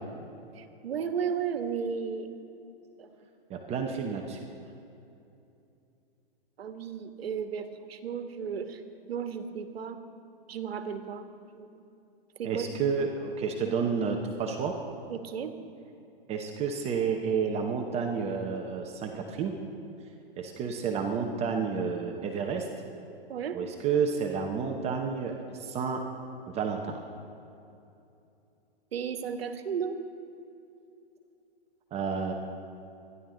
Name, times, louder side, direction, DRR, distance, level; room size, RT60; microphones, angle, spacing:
voice 1, 0.5-2.3 3.0-3.1 6.6-8.8 9.1-10.0 10.5-11.8 12.4-12.7 13.6-13.8 15.1-15.5 23.3-23.6 28.9-30.0, right 7 dB, 80° right, 8 dB, 1.4 m, -34 dB
voice 2, 3.5-4.4 12.4-14.8 16.3-19.5 20.4-22.7 23.5-26.0 26.5-27.0 31.9-32.3, right 6 dB, 20° right, 2 dB, 0.9 m, -30 dB
25.0 x 11.0 x 3.9 m, 2.7 s
hypercardioid pair, 140°, 30 cm